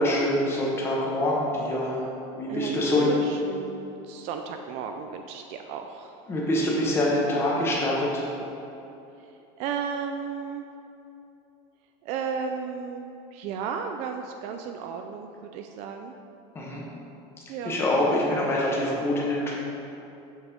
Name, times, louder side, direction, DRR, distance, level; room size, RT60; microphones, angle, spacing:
voice 1, 0.0-2.0 2.4-3.1 6.3-8.3 16.5-16.9 17.6-19.5, left 1 dB, 15° left, -4 dB, 1.1 m, -25 dB
voice 2, 2.5-6.2 9.2-10.7 12.0-16.1 17.5-17.8, right 6 dB, 45° right, 5 dB, 0.4 m, -34 dB
7.0 x 4.2 x 5.1 m, 2.8 s
cardioid pair, 170°, 15 cm